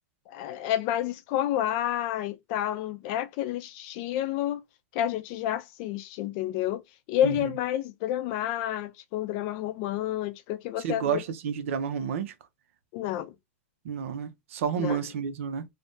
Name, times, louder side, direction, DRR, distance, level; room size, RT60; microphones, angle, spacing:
voice 1, 0.3-4.6 4.9-6.8 7.1-11.2 12.9-13.3 14.8-15.0, left 12 dB, 45° left, 0.4 m, -29 dB
voice 2, 10.8-12.3 13.8-15.6, right 7 dB, 70° right, 0.6 m, -30 dB
3.4 x 2.1 x 2.6 m
supercardioid pair, 145°, 7 cm